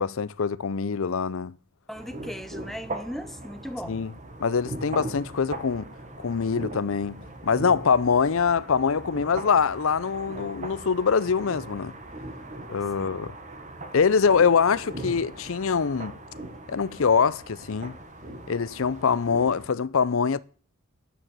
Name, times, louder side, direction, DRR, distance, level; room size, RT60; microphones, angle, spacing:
voice 1, 0.0-1.5 3.9-4.1 4.4-5.9 6.2-11.9 12.7-13.3 13.9-16.1 16.7-18.0 18.5-20.4, left 5 dB, 65° left, 0.5 m, -24 dB
voice 2, 1.9-4.0 12.9-13.1, equal, ahead, 0.8 m, -37 dB
sound 1, 1.9-19.7, right 2 dB, 30° right, 1.3 m, -40 dB
11.0 x 9.4 x 7.5 m
head